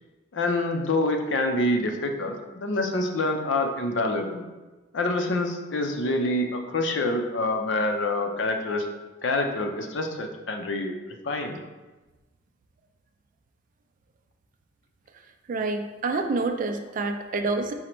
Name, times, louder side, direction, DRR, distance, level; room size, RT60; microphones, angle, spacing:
voice 1, 0.3-4.4 4.9-8.9 9.2-11.6, left 2 dB, 75° left, 4 dB, 0.5 m, -26 dB
voice 2, 15.5-17.7, right 3 dB, 45° right, 6 dB, 0.4 m, -27 dB
5.0 x 2.1 x 4.4 m, 1.2 s
head